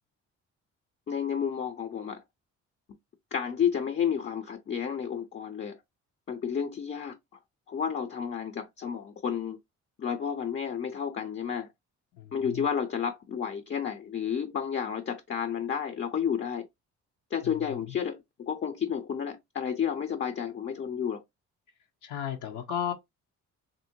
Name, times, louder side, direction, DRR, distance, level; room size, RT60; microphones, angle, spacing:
voice 1, 1.1-2.2 3.3-5.8 6.3-7.2 7.7-9.6 10.0-11.7 12.3-16.7 17.3-21.2, left 7 dB, 40° left, 0.6 m, -31 dB
voice 2, 12.2-12.6 17.4-17.9 22.0-22.9, left 9 dB, 80° left, 0.8 m, -35 dB
3.0 x 2.7 x 2.7 m
cardioid pair, 90°, 30 cm